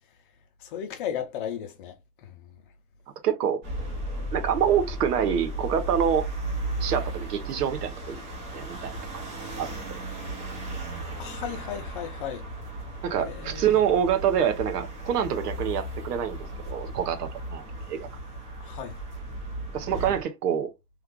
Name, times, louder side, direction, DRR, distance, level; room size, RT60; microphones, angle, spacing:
voice 1, 0.6-2.4 11.2-12.5 13.2-13.8 18.6-19.0, left 9 dB, 35° left, 0.6 m, -35 dB
voice 2, 3.2-3.6 4.3-6.3 6.8-8.2 8.5-8.9 9.6-10.0 13.0-18.1 19.7-20.7, right 8 dB, 80° right, 1.0 m, -26 dB
sound 1, 3.6-20.2, right 1 dB, 25° right, 0.9 m, -35 dB
3.2 x 2.4 x 3.6 m
supercardioid pair, 165°, 46 cm